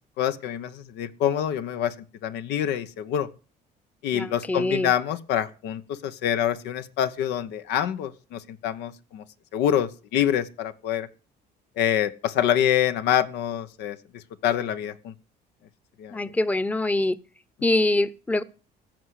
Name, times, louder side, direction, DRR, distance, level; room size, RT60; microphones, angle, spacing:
voice 1, 0.2-1.9 2.2-3.3 4.0-9.2 9.5-11.1 11.8-15.1 16.0-16.2, left 10 dB, 90° left, 1.1 m, -26 dB
voice 2, 4.1-4.9 16.1-17.2 17.6-18.4, left 2 dB, 10° left, 0.8 m, -24 dB
15.5 x 6.4 x 8.2 m
cardioid pair, 110°, 17 cm